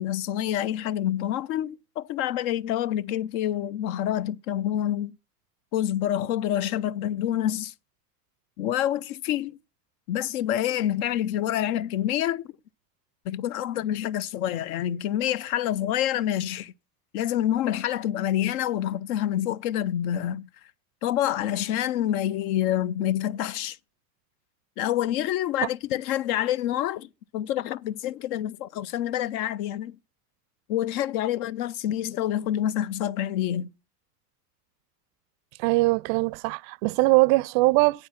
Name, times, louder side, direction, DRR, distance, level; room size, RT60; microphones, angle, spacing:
voice 1, 0.0-5.2 5.7-7.7 8.6-9.6 10.1-12.5 13.3-16.7 17.1-20.5 21.0-23.8 24.8-30.0 30.7-33.7, left 11 dB, 60° left, 0.6 m, -27 dB
voice 2, 35.6-38.1, right 23 dB, 50° right, 0.4 m, -21 dB
8.7 x 7.0 x 5.8 m
hypercardioid pair, 100°, 49 cm